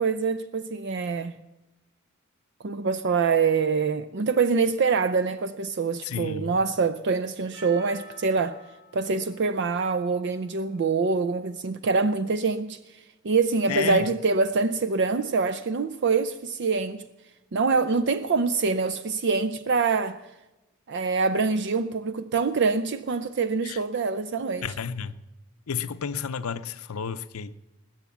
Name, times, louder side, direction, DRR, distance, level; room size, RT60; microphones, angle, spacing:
voice 1, 0.0-1.4 2.6-8.6 8.9-12.8 13.2-17.0 17.5-20.2 20.9-24.7, right 4 dB, 50° right, 0.5 m, -25 dB
voice 2, 6.0-6.6 13.7-14.1 23.6-23.8 24.6-25.1 25.7-27.6, left 6 dB, 75° left, 0.6 m, -31 dB
Percussion, 7.5-12.1, equal, 80° right, 7.3 m, -52 dB
20.5 x 8.0 x 7.1 m
head